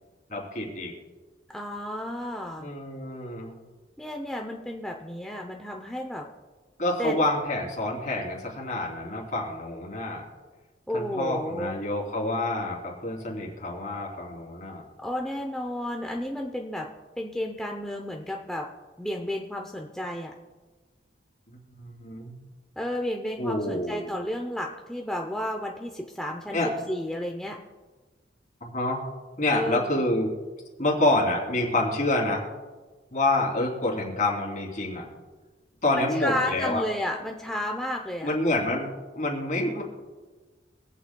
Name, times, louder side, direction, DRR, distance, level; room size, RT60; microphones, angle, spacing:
voice 1, 0.3-0.9 2.6-3.6 6.8-10.2 10.9-14.8 21.8-22.4 23.4-24.1 26.5-26.7 28.6-29.0 29.4-30.3 30.8-32.5 33.1-35.1 35.8-36.8 38.2-39.8, left 2 dB, 45° left, -3 dB, 3.2 m, -27 dB
voice 2, 1.5-2.7 4.0-6.3 7.0-7.2 10.9-11.8 15.0-16.9 17.2-18.7 19.0-20.3 22.8-27.6 29.5-30.0 36.0-38.3, left 1 dB, 5° left, 1 dB, 0.6 m, -32 dB
25.5 x 8.5 x 2.3 m, 1.3 s
head